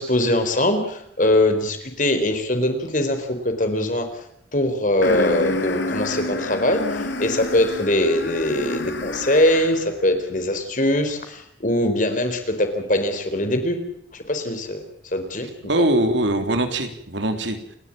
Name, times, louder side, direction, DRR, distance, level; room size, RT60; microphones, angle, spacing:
voice 1, 0.0-4.1 4.5-13.8 14.1-14.8 15.1-15.5, left 1 dB, 45° left, 7 dB, 4.1 m, -22 dB
sound 1, 5.0-9.9, left 2 dB, 75° left, 3.1 m, -29 dB
voice 2, 15.7-17.8, right 1 dB, 75° right, 7 dB, 3.4 m, -22 dB
30.0 x 13.0 x 8.9 m, 0.74 s
head